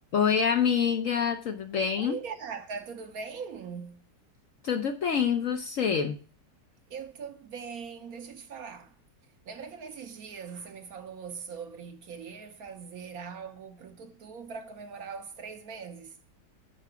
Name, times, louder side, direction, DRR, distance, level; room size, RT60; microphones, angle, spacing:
voice 1, 0.1-2.2 4.6-6.2, left 7 dB, 60° left, 0.9 m, -26 dB
voice 2, 2.0-4.0 6.9-8.9 9.5-16.2, right 6 dB, 60° right, 1.1 m, -41 dB
11.0 x 4.7 x 4.7 m
omnidirectional pair, 1.9 m